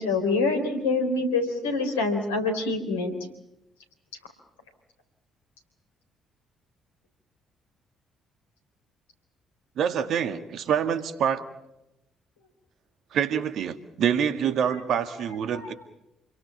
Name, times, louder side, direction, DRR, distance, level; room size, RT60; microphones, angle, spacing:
voice 1, 0.0-3.2 15.5-15.7, left 3 dB, 80° left, 6 dB, 3.8 m, -26 dB
voice 2, 9.8-11.5 13.1-15.7, right 8 dB, 60° right, 10 dB, 1.9 m, -26 dB
28.5 x 22.5 x 5.8 m, 0.90 s
figure-of-eight pair, 45°, 0 cm